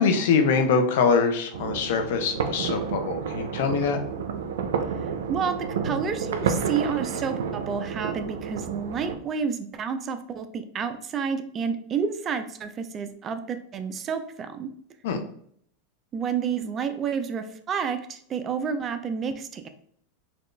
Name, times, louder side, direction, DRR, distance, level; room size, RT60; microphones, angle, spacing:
voice 1, 0.0-4.0 15.0-15.2, left 5 dB, 75° left, 6 dB, 0.6 m, -23 dB
sound 1, 1.5-9.2, right 6 dB, 85° right, 0.5 m, -30 dB
voice 2, 5.3-14.7 16.1-19.7, right 6 dB, 30° right, 9 dB, 0.4 m, -30 dB
4.1 x 2.4 x 3.2 m, 0.62 s
supercardioid pair, 130°, 0 cm